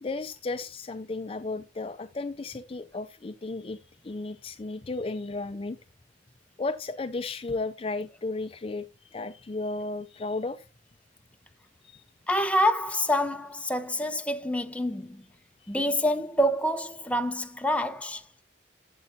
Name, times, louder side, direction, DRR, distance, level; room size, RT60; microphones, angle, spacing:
voice 1, 0.0-3.8 4.0-5.8 6.6-10.6 11.8-12.0, left 3 dB, 30° left, 0.5 m, -34 dB
voice 2, 12.3-15.2 15.7-18.2, equal, 10° left, 0.8 m, -27 dB
12.5 x 7.7 x 2.7 m
head